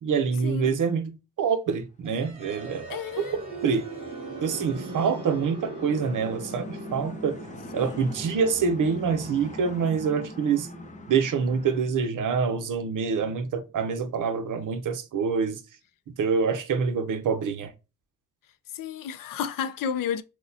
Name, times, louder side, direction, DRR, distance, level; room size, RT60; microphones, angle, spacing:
voice 1, 0.0-3.0 3.6-3.8 4.4-7.4 7.7-10.7 11.1-15.6 16.1-17.7, right 6 dB, 70° right, 0.7 m, -26 dB
sound 1, 2.0-13.9, right 2 dB, 15° right, 1.5 m, -41 dB
sound 2, 2.2-11.8, left 1 dB, 25° left, 0.7 m, -44 dB
voice 2, 2.9-3.3 7.9-8.0 18.7-20.2, left 8 dB, 90° left, 0.5 m, -31 dB
6.1 x 2.2 x 2.6 m
wide cardioid pair, 130°, 32 cm